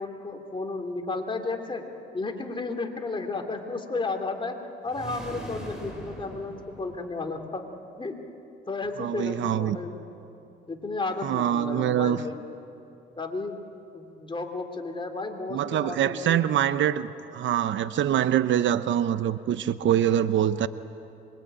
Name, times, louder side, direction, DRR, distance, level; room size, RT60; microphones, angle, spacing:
voice 1, 0.0-1.8 2.1-4.6 4.8-7.6 8.0-8.2 8.7-9.9 10.3-10.4 10.7-12.4 13.2-13.5 13.9-16.5, left 3 dB, 25° left, 3 dB, 3.2 m, -33 dB
sound 1, 4.9-7.5, equal, 5° right, 7.6 m, -41 dB
voice 2, 9.0-9.8 11.2-12.3 15.5-20.7, right 10 dB, 70° right, 13 dB, 0.8 m, -24 dB
25.5 x 23.0 x 9.0 m, 2.7 s
cardioid pair, 90°, 20 cm